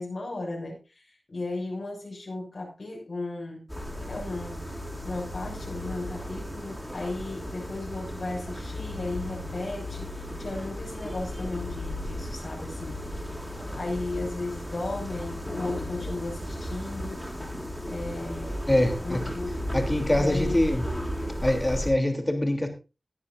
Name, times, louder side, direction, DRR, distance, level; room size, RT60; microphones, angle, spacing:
voice 1, 0.0-3.7 4.1-4.8 5.0-13.0 13.7-17.3 17.8-18.7 19.0-19.6 20.1-20.6, left 2 dB, 65° left, -2 dB, 6.6 m, -35 dB
sound 1, 3.7-21.9, equal, ahead, 5.1 m, -35 dB
voice 2, 18.7-19.4 19.7-20.8 21.4-22.7, left 1 dB, 20° left, 5 dB, 3.2 m, -24 dB
19.0 x 10.0 x 2.6 m, 0.29 s
wide cardioid pair, 70°, 0 cm